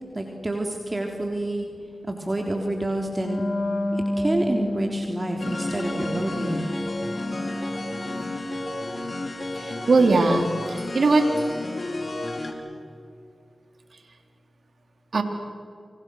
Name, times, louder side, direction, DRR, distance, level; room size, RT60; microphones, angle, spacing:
voice 1, 0.1-1.7 2.1-3.4 3.9-6.6, right 1 dB, 35° right, 2 dB, 3.5 m, -28 dB
Wind instrument woodwind instrument, 3.0-8.1, left 1 dB, 75° left, 7.1 m, -30 dB
sound 1, 5.4-12.5, left 2 dB, 50° left, 4.2 m, -31 dB
voice 2, 9.5-11.3 15.1-15.2, right 3 dB, 70° right, 5 dB, 3.3 m, -20 dB
29.0 x 27.5 x 6.5 m, 2.4 s
cardioid pair, 45°, 0 cm